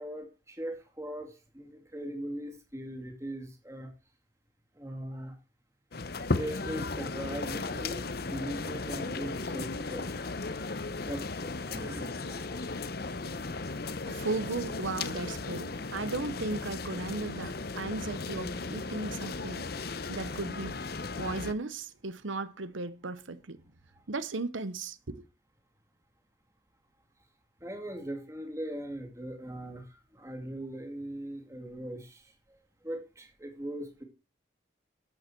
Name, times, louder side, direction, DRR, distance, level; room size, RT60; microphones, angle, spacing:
voice 1, 0.0-3.9 4.8-5.3 6.4-10.1 11.0-12.6 27.6-32.3 32.8-34.0, right 1 dB, 15° right, 2.4 m, -40 dB
sound 1, 5.9-21.5, left 3 dB, 50° left, 0.8 m, -36 dB
voice 2, 14.1-20.8 21.2-23.6 24.1-25.2, right 3 dB, 85° right, 0.9 m, -36 dB
13.0 x 8.2 x 4.5 m
head